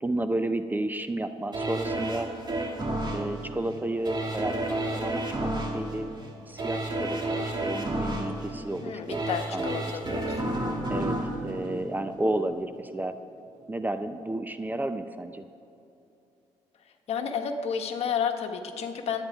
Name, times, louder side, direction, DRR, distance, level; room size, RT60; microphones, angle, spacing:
voice 1, 0.0-2.3 3.1-6.1 6.5-9.2 9.5-10.2 10.9-13.1 13.7-15.4, right 1 dB, 15° right, 9 dB, 0.6 m, -32 dB
sound 1, 1.5-12.5 12.9-13.0, right 1 dB, 40° right, 2.3 m, -31 dB
voice 2, 8.8-10.4 17.1-19.2, left 7 dB, 60° left, 4 dB, 1.4 m, -31 dB
23.5 x 9.3 x 3.6 m, 2.8 s
cardioid pair, 85°, 12 cm